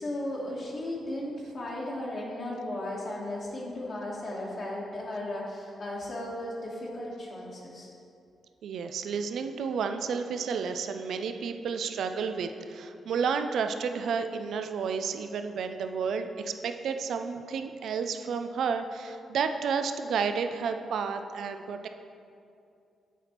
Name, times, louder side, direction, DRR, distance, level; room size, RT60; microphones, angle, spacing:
voice 1, 0.0-7.9, left 1 dB, 55° left, -5 dB, 1.4 m, -35 dB
voice 2, 8.6-21.9, right 6 dB, 75° right, 7 dB, 0.3 m, -31 dB
8.0 x 4.2 x 4.4 m, 2.5 s
supercardioid pair, 60°, 0 cm